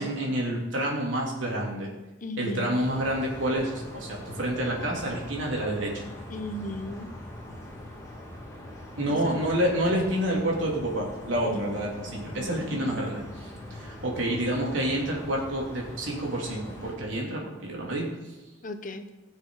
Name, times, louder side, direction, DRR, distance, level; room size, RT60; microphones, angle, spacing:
voice 1, 0.0-1.9 2.4-6.1 9.0-18.1, right 1 dB, 90° right, -2 dB, 3.1 m, -28 dB
voice 2, 2.2-2.8 6.3-7.1 9.1-9.4 11.5-11.8 12.7-13.0 18.6-19.1, left 1 dB, 45° left, 8 dB, 0.9 m, -36 dB
sound 1, 2.8-17.0, left 1 dB, 20° left, 2.6 m, -42 dB
19.5 x 6.8 x 4.9 m, 1.1 s
head